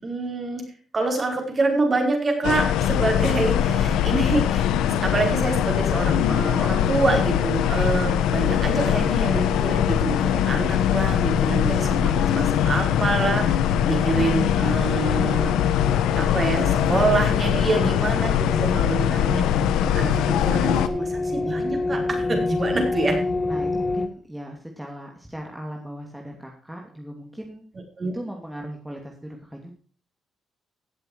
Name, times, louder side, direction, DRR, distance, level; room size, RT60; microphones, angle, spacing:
voice 1, 0.0-4.7 5.0-15.6 16.2-19.5 19.9-23.2 28.0-28.1, right 3 dB, 30° right, 3 dB, 5.0 m, -26 dB
sound 1, 2.4-20.9, left 10 dB, 90° left, 1.0 m, -22 dB
sound 2, 10.5-24.1, left 3 dB, 30° left, 1.2 m, -30 dB
voice 2, 20.4-20.7 21.2-21.3 23.5-27.6 28.1-29.7, equal, 5° right, 1 dB, 2.8 m, -38 dB
17.0 x 7.7 x 4.8 m, 0.42 s
cardioid pair, 90°, 0 cm